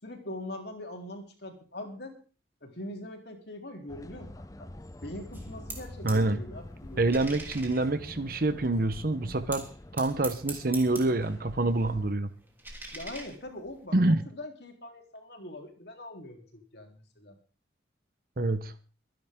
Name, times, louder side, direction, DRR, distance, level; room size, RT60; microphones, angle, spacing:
voice 1, 0.0-2.1 2.6-4.7 5.0-7.2 12.9-17.4, left 1 dB, 60° left, 3 dB, 3.5 m, -42 dB
sound 1, 3.9-12.1, left 1 dB, 20° left, 0.6 m, -46 dB
sound 2, 5.3-6.3 6.6-8.8 9.5-11.4 11.7-13.9, right 2 dB, 10° right, 3.2 m, -44 dB
voice 2, 6.0-6.4 7.0-9.7 9.9-12.3 13.9-14.2 18.4-18.7, right 2 dB, 50° right, 11 dB, 1.0 m, -26 dB
24.5 x 10.5 x 3.7 m, 0.36 s
head